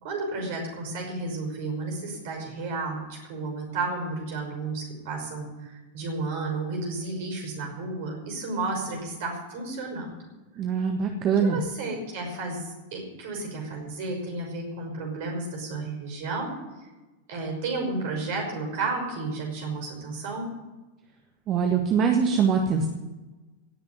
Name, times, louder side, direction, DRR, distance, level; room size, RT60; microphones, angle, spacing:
voice 1, 0.0-10.1 11.4-16.6 17.3-20.5, right 3 dB, 50° right, 2 dB, 5.5 m, -32 dB
voice 2, 10.6-11.6 21.5-22.9, right 6 dB, 35° right, 3 dB, 1.6 m, -23 dB
18.0 x 6.9 x 9.4 m, 1.2 s
figure-of-eight pair, 90°, 0 cm